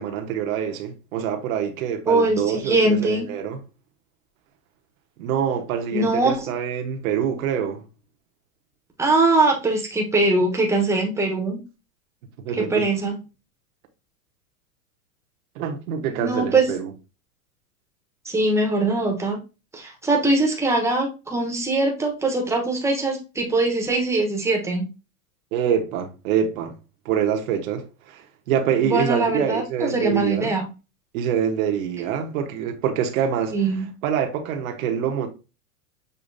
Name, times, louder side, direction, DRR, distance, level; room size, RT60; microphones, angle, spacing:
voice 1, 0.0-3.6 5.2-7.8 12.4-12.9 15.5-16.9 25.5-26.8 27.0-30.6 31.1-33.6 34.0-35.3, right 8 dB, 65° right, 1.2 m, -25 dB
voice 2, 2.1-3.3 5.9-6.5 9.0-11.6 12.6-13.2 16.2-16.7 18.2-19.4 19.7-24.9 28.8-30.7 33.5-33.9, right 2 dB, 5° right, 1.1 m, -22 dB
6.8 x 2.8 x 2.7 m
supercardioid pair, 135°, 45 cm